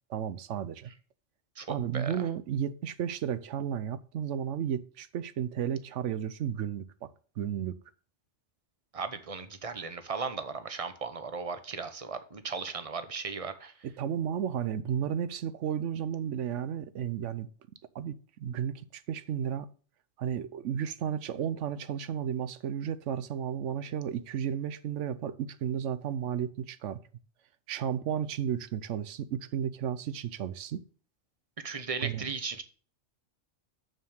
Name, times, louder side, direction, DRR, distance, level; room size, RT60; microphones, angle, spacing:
voice 1, 0.1-0.9 1.7-7.1 7.4-7.7 13.8-17.5 17.9-19.7 20.2-27.0 27.7-30.8 32.0-32.3, right 9 dB, 70° right, 1.0 m, -33 dB
voice 2, 8.9-13.7 31.6-32.6, right 5 dB, 30° right, 0.8 m, -36 dB
6.9 x 6.3 x 6.3 m
omnidirectional pair, 1.3 m